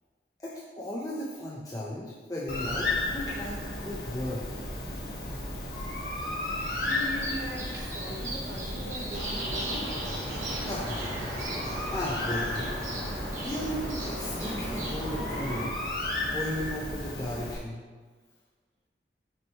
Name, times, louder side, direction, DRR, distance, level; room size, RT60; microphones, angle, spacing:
voice 1, 0.4-4.5 10.5-11.2 11.9-12.7 13.4-15.7 16.2-17.8, left 1 dB, 20° left, -5 dB, 0.7 m, -35 dB
Bird, 2.5-17.5, left 2 dB, 55° left, 1.3 m, -34 dB
sound 1, 6.6-11.6, right 2 dB, 15° right, 1.1 m, -42 dB
voice 2, 6.9-10.0, equal, 80° right, 0 dB, 1.3 m, -40 dB
sound 2, 9.1-15.6, right 1 dB, 45° right, 1.9 m, -36 dB
6.3 x 5.0 x 4.5 m, 1.5 s
head